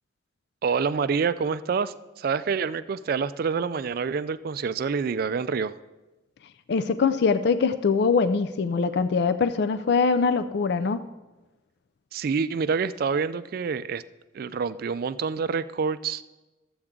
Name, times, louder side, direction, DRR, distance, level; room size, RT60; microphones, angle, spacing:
voice 1, 0.6-5.7 12.1-14.0 14.3-16.2, right 5 dB, 50° right, 14 dB, 0.3 m, -27 dB
voice 2, 6.7-11.0, left 5 dB, 55° left, 11 dB, 0.4 m, -23 dB
13.5 x 7.8 x 3.7 m, 1.1 s
head